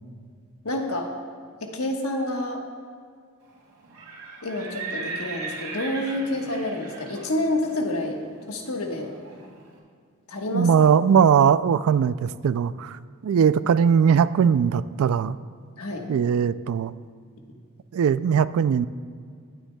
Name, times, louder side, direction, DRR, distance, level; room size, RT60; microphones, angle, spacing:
voice 1, 0.6-1.1 1.6-2.6 4.4-8.2 8.5-9.1 10.3-10.7 15.8-16.1, left 1 dB, 75° left, 2 dB, 1.3 m, -28 dB
Livestock farm animals working animals, 3.8-9.6, right 3 dB, 85° right, 2.8 m, -38 dB
voice 2, 10.5-15.4 16.1-16.9 17.9-18.9, right 7 dB, 65° right, 16 dB, 0.3 m, -20 dB
20.5 x 8.9 x 2.3 m, 2.1 s
head